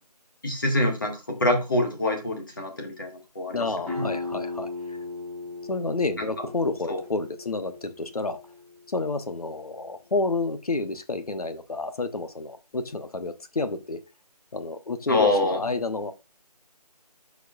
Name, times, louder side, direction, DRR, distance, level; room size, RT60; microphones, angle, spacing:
voice 1, 0.4-3.6 3.9-4.0 6.2-6.3 6.9-7.0 15.1-15.6, left 2 dB, 30° left, 1.4 m, -25 dB
voice 2, 3.5-4.7 5.7-8.4 8.9-14.0 14.5-16.1, left 3 dB, 60° left, 0.9 m, -29 dB
sound 1, 3.8-9.3, left 3 dB, 5° left, 2.6 m, -37 dB
11.5 x 4.6 x 2.3 m
figure-of-eight pair, 175°, 21 cm